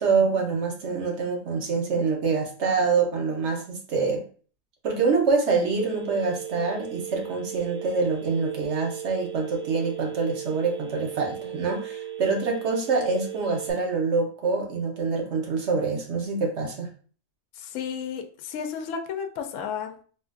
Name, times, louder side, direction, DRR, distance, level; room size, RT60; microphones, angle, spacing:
voice 1, 0.0-4.2 4.8-16.9, right 4 dB, 60° right, 1 dB, 1.1 m, -25 dB
Telephone, 5.7-13.7, right 11 dB, 35° right, 0.3 m, -37 dB
voice 2, 17.6-20.0, left 7 dB, 70° left, 6 dB, 0.9 m, -33 dB
4.2 x 2.4 x 2.4 m, 0.42 s
omnidirectional pair, 1.4 m